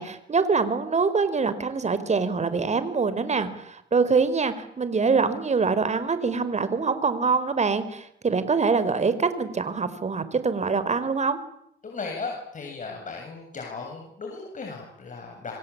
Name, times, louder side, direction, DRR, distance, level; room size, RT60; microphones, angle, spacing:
voice 1, 0.0-11.4, right 4 dB, 35° right, 13 dB, 4.4 m, -24 dB
voice 2, 11.8-15.5, left 4 dB, 40° left, 1 dB, 8.0 m, -36 dB
28.0 x 24.0 x 8.7 m, 0.71 s
cardioid pair, 90°, 20 cm